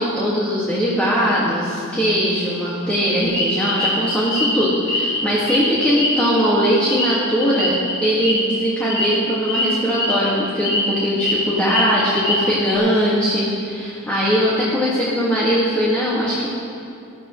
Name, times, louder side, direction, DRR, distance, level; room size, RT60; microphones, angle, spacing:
voice 1, 0.0-16.5, equal, 5° left, -8 dB, 2.0 m, -20 dB
sound 1, 3.3-5.2 5.5-8.5 8.9-9.1 9.5-9.7 10.0-10.3 10.6-11.3 11.6-12.7, left 2 dB, 60° left, 3.4 m, -23 dB
21.0 x 13.0 x 3.2 m, 2.6 s
head